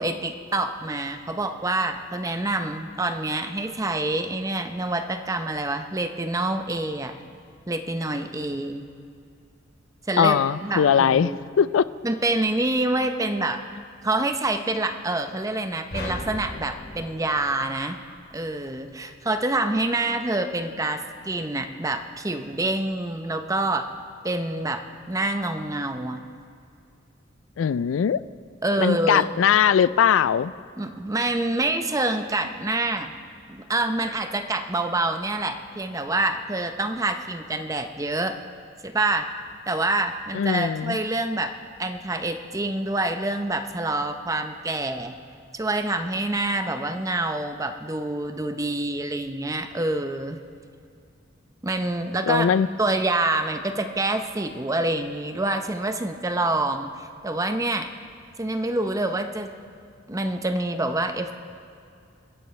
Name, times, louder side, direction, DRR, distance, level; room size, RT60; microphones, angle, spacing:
voice 1, 0.0-7.1 7.7-8.9 10.1-11.4 12.0-13.6 14.0-18.0 18.3-23.9 24.2-26.2 28.6-29.4 30.8-33.1 33.5-38.4 38.8-39.3 39.7-41.5 41.8-45.1 45.5-50.4 51.6-52.5 52.8-57.9 58.4-59.5 60.1-61.3, right 2 dB, 15° right, 7 dB, 0.7 m, -26 dB
voice 2, 10.2-11.9 27.6-28.2 28.8-30.5 40.3-41.0 52.3-52.7, left 7 dB, 90° left, 17 dB, 0.4 m, -20 dB
sound 1, 15.9-18.3, left 1 dB, 55° left, 2.9 m, -37 dB
26.5 x 10.5 x 3.2 m, 2.4 s
head